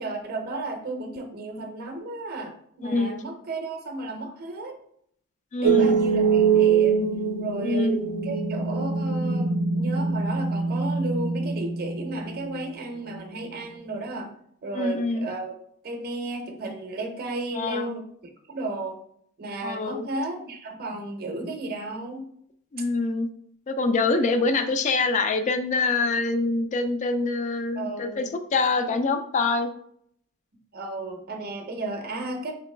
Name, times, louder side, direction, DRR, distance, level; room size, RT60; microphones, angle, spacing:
voice 1, 0.0-4.8 5.6-7.1 7.4-8.0 8.2-14.3 14.6-15.5 15.8-19.0 19.4-22.3 27.7-28.3 28.7-29.0 30.7-32.6, right 2 dB, 45° right, 4 dB, 0.6 m, -34 dB
voice 2, 2.8-3.1 5.5-6.0 7.6-8.0 14.7-15.3 17.5-17.9 19.6-20.0 22.7-23.3 23.7-29.7, left 3 dB, 35° left, 9 dB, 0.3 m, -25 dB
sound 1, 5.6-12.6, right 6 dB, 90° right, 0.4 m, -23 dB
4.0 x 3.0 x 3.2 m, 0.68 s
head